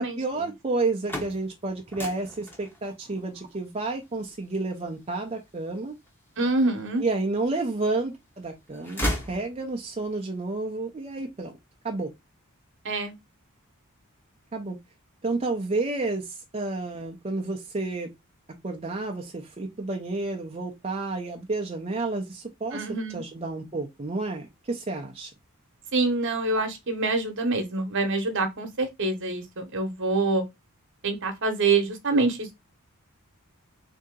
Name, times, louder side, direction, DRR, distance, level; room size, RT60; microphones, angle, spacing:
voice 1, 0.0-5.9 7.0-11.5 11.8-12.1 14.5-14.8 15.2-18.1 18.6-25.3, right 3 dB, 25° right, 0.5 m, -30 dB
sound 1, 0.8-6.7 7.3-8.1 8.4-10.0, equal, 10° left, 0.9 m, -36 dB
voice 2, 6.4-7.0 12.8-13.1 22.7-23.2 25.9-30.4 31.0-32.5, right 3 dB, 55° right, 1.0 m, -26 dB
3.7 x 2.7 x 3.7 m
head